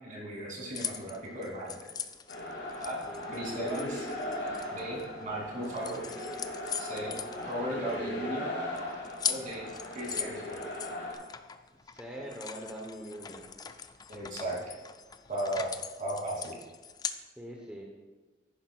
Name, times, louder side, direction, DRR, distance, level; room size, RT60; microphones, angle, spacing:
voice 1, 0.0-1.8 2.8-3.0 3.3-4.1 4.7-6.0 6.7-8.5 9.2-9.7 9.9-10.6 14.1-14.6 15.3-15.7 16.0-16.5, right 1 dB, 45° right, -4 dB, 2.9 m, -36 dB
sound 1, 0.7-5.3 5.6-8.1 8.4-8.5 8.7-17.2, left 7 dB, 20° left, 0.3 m, -40 dB
sound 2, 2.3-11.1, left 1 dB, 80° left, 2.3 m, -38 dB
voice 2, 3.0-3.4 11.8-13.5 17.4-17.8, right 1 dB, 5° right, -2 dB, 0.9 m, -43 dB
10.5 x 10.0 x 2.4 m, 1.2 s
head